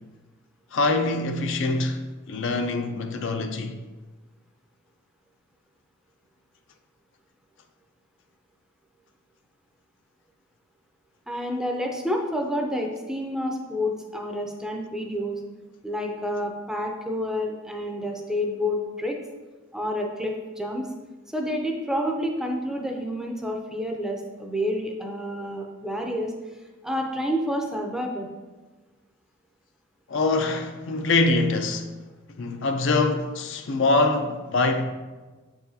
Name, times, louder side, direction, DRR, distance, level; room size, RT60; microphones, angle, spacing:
voice 1, 0.7-3.8 30.1-31.9 32.4-34.9, left 3 dB, 60° left, 0.4 m, -24 dB
voice 2, 11.3-15.4 15.8-19.2 19.7-20.9 21.3-26.3 26.8-28.3, equal, 5° right, 0.5 m, -29 dB
7.4 x 4.8 x 2.7 m
head